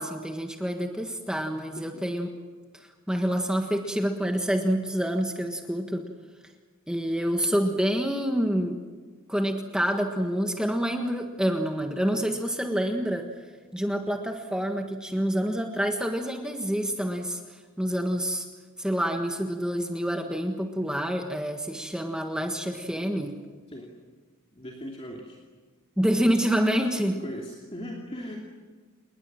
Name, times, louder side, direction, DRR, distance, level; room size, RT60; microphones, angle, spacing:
voice 1, 0.0-2.3 2.7-6.1 6.9-8.8 9.3-13.3 13.7-18.5 18.8-23.4 26.0-27.2, equal, 5° right, 3 dB, 1.5 m, -27 dB
voice 2, 24.5-25.4 26.0-26.3 27.2-28.4, equal, 25° left, -1 dB, 2.8 m, -39 dB
29.5 x 20.0 x 7.6 m, 1.4 s
head